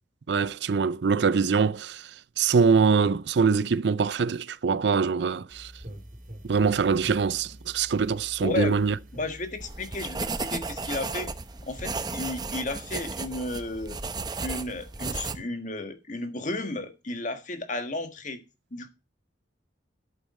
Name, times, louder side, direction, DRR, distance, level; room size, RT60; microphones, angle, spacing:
voice 1, 0.3-2.0 2.4-5.7 6.5-9.0, right 5 dB, 65° right, 0.5 m, -23 dB
sound 1, 5.5-11.8, equal, 45° right, 2.8 m, -46 dB
voice 2, 8.4-8.7 9.1-11.3 11.7-14.0 14.4-18.4 18.7-18.9, left 2 dB, 40° left, 1.6 m, -33 dB
sound 2, 9.6-15.3, right 4 dB, 20° right, 0.7 m, -34 dB
11.0 x 8.3 x 4.2 m
head